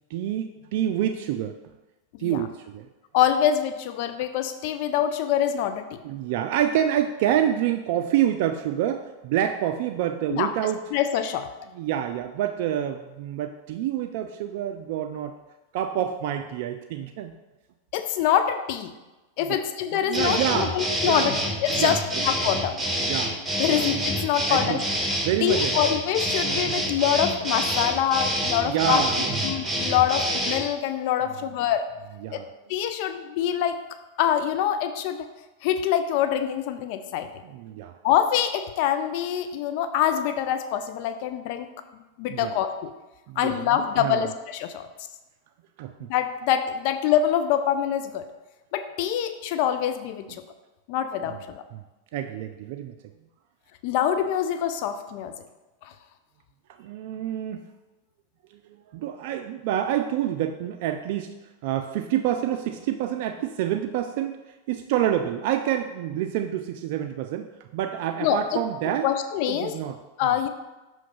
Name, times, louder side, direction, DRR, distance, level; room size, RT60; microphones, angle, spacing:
voice 1, 0.1-1.6 2.2-2.9 6.0-10.8 11.7-15.3 15.7-17.3 19.4-19.6 19.9-20.7 21.0-21.3 21.7-22.0 23.0-23.4 23.7-23.9 24.5-24.8 25.2-25.7 28.6-29.4 32.2-32.5 37.4-38.0 42.3-42.6 43.3-44.3 45.8-46.1 51.3-51.4 51.7-51.8 52.1-53.0 56.7-57.6 58.5-61.3 61.6-64.4 64.7-69.1 69.5-70.0, right 11 dB, 60° right, 7 dB, 0.3 m, -27 dB
voice 2, 3.1-6.0 10.3-10.5 10.9-11.5 17.9-18.9 19.4-21.3 21.6-22.8 23.6-24.8 25.4-29.0 29.4-31.9 32.3-32.4 32.7-33.8 34.2-35.3 35.6-37.3 38.0-41.7 42.2-42.9 43.4-44.9 46.1-48.2 48.7-50.3 50.9-51.6 53.8-55.3 55.8-55.9 68.2-68.6 69.0-69.7 70.2-70.5, left 10 dB, 55° left, 9 dB, 0.4 m, -25 dB
sound 1, 20.1-30.6, equal, ahead, 1.9 m, -27 dB
6.3 x 3.1 x 5.6 m, 1.1 s
hypercardioid pair, 95°, 0 cm